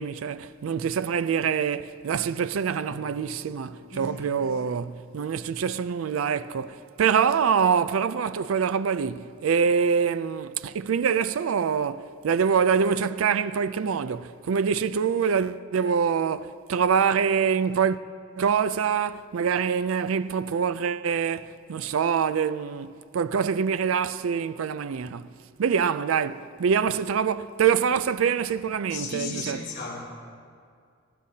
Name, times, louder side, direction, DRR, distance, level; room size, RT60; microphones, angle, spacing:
voice 1, 0.0-18.0 18.4-25.3 25.6-29.6, right 6 dB, 90° right, 0.4 m, -25 dB
Guitar, 2.9-8.3, left 2 dB, 60° right, 3.2 m, -55 dB
voice 2, 3.9-4.3 28.9-30.0, left 4 dB, 65° left, 2.3 m, -35 dB
19.0 x 14.5 x 2.8 m
head